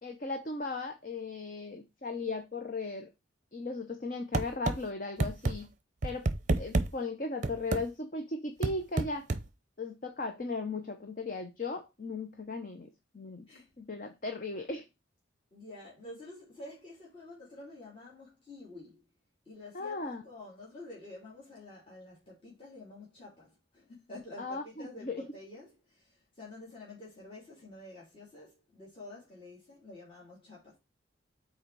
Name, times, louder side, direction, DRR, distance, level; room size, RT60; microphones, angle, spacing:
voice 1, 0.0-3.1 3.5-5.7 6.0-6.3 6.6-9.3 9.8-13.5 13.8-14.9 19.7-20.2 24.4-25.2, left 3 dB, 45° left, 0.8 m, -37 dB
sound 1, 4.3-4.8 5.2-5.5 6.0-6.9 7.4-7.8 8.6-9.4, right 2 dB, 40° right, 0.6 m, -28 dB
voice 2, 15.5-19.0 19.4-30.8, left 2 dB, 25° left, 3.2 m, -49 dB
6.4 x 4.3 x 4.6 m
head